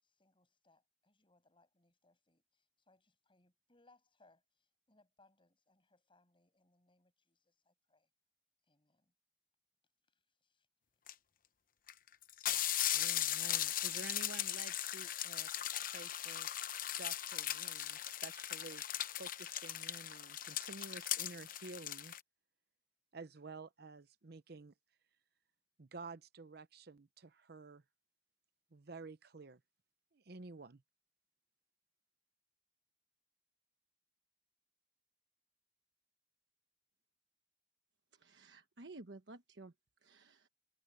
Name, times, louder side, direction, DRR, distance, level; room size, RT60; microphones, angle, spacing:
voice 1, 0.0-8.1 8.7-9.1 10.1-10.7, left 2 dB, 30° left, 6.9 m, -72 dB
sound 1, 11.1-11.2 11.9-12.0 12.2-22.2, left 11 dB, 55° left, 0.8 m, -38 dB
voice 2, 12.9-15.5 15.8-16.5 17.0-18.8 19.2-22.1 23.1-24.7 25.8-27.8 28.7-29.6 30.1-30.8, right 3 dB, 60° right, 0.8 m, -51 dB
voice 3, 38.1-39.7 40.0-40.5, right 2 dB, 85° right, 1.2 m, -54 dB
head